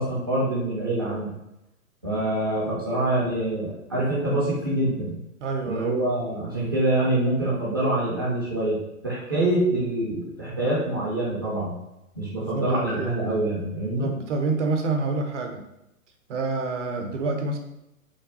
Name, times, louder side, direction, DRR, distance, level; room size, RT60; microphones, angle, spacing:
voice 1, 0.0-1.3 2.0-5.2 5.6-8.8 9.0-11.7 12.1-14.1, right 1 dB, 20° right, -8 dB, 0.3 m, -25 dB
voice 2, 5.4-5.9 12.4-13.3 14.0-15.6 16.3-17.6, right 3 dB, 55° right, 3 dB, 0.7 m, -28 dB
3.1 x 2.2 x 2.8 m, 0.88 s
figure-of-eight pair, 120°, 43 cm